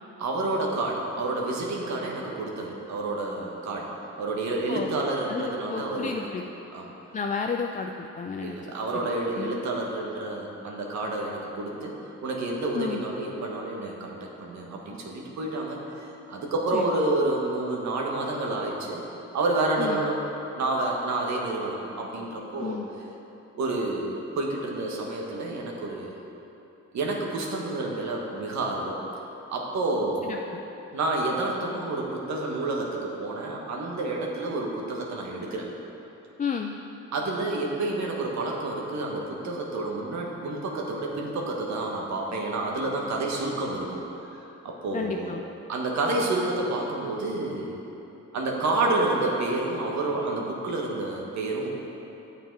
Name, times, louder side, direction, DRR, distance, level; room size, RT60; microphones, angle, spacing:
voice 1, 0.2-6.2 6.7-6.9 8.4-19.0 19.3-20.2 20.5-22.8 23.6-26.2 26.9-29.0 29.5-30.3 30.9-35.7 37.1-44.0 44.3-45.3 45.7-47.8 48.3-51.7, right 2 dB, 65° right, -1 dB, 1.4 m, -29 dB
voice 2, 5.3-6.4 7.1-8.7 9.4-9.5 12.7-13.0 16.7-16.8 19.8-20.0 22.6-22.9 30.2-30.6 36.4-36.8 44.9-45.4, left 5 dB, 25° left, 3 dB, 0.4 m, -32 dB
9.2 x 6.8 x 4.6 m, 3.0 s
cardioid pair, 90°, 30 cm